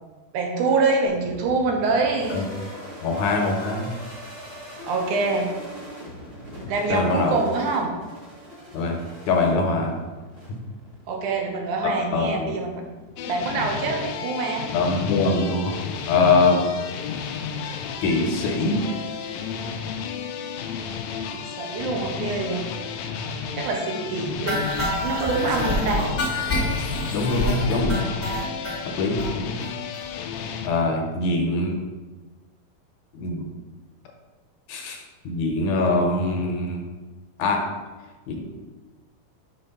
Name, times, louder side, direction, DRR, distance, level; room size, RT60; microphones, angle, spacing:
voice 1, 0.3-2.4 4.9-5.5 6.7-7.9 11.1-12.8 13.3-14.7 21.3-22.6 23.5-24.6 25.0-26.1, right 3 dB, 75° right, 2 dB, 2.3 m, -25 dB
sound 1, 1.1-20.3, equal, 40° right, 0.8 m, -43 dB
voice 2, 3.0-3.9 6.9-7.4 8.7-9.0 9.3-10.0 11.8-12.5 14.7-15.8 16.1-16.7 18.0-18.8 21.3-21.4 25.6-26.0 27.1-28.2 29.0-29.6 30.6-31.7 33.1-33.5 34.7-36.8 37.4-37.7 38.3-38.4, left 3 dB, 75° left, 2 dB, 2.0 m, -23 dB
sound 2, 13.2-30.7, left 7 dB, 90° left, 1.6 m, -32 dB
sound 3, 24.5-28.8 29.2-29.3 29.6-29.7 29.9-30.1 30.4-30.5, left 1 dB, 45° left, 0.5 m, -27 dB
6.3 x 4.3 x 5.5 m, 1.2 s
omnidirectional pair, 3.7 m